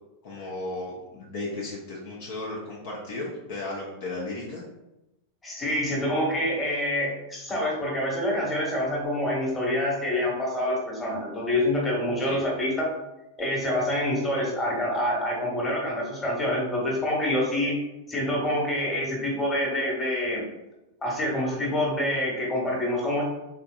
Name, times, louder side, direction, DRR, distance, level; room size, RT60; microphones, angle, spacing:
voice 1, 0.2-4.6 12.2-12.4, left 2 dB, 50° left, -4 dB, 0.8 m, -35 dB
voice 2, 5.4-12.9 13.4-17.7 18.1-20.4 21.0-23.2, left 1 dB, 15° left, -3 dB, 1.4 m, -26 dB
3.7 x 3.6 x 2.4 m, 0.98 s
figure-of-eight pair, 90°, 0 cm